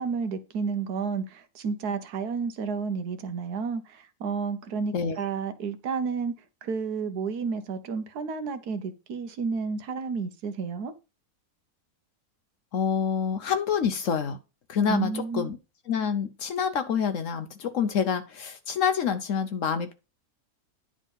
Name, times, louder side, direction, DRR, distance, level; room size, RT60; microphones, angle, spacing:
voice 1, 0.0-10.9 14.9-15.5, right 5 dB, 75° right, 1.4 m, -31 dB
voice 2, 12.7-14.4 14.7-15.6 15.9-19.9, left 7 dB, 60° left, 1.0 m, -27 dB
9.9 x 3.6 x 5.4 m
omnidirectional pair, 1.7 m